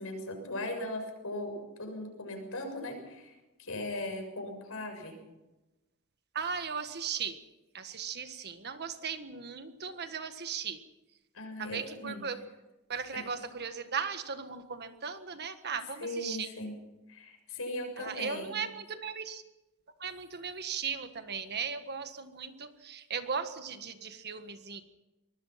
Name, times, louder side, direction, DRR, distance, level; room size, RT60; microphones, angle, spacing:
voice 1, 0.0-5.2 11.3-12.2 13.1-13.3 16.0-16.7 17.1-18.6, left 1 dB, 70° left, 4 dB, 6.8 m, -38 dB
voice 2, 6.3-7.4 7.7-10.8 11.6-12.4 12.9-16.5 18.0-19.4 20.0-24.8, right 6 dB, 50° right, 9 dB, 1.6 m, -37 dB
24.0 x 21.0 x 5.9 m, 1.0 s
head